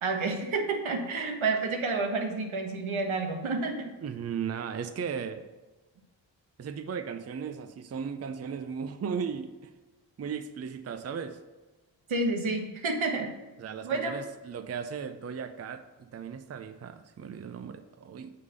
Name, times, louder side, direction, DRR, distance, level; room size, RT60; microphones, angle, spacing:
voice 1, 0.0-3.9 12.1-13.3 13.8-14.2, right 3 dB, 80° right, 4 dB, 1.3 m, -29 dB
voice 2, 4.0-5.5 6.6-9.7 10.2-11.4 13.6-15.8 16.1-18.3, right 6 dB, 35° right, 10 dB, 0.5 m, -36 dB
8.3 x 3.7 x 6.4 m, 1.2 s
wide cardioid pair, 85°, 47 cm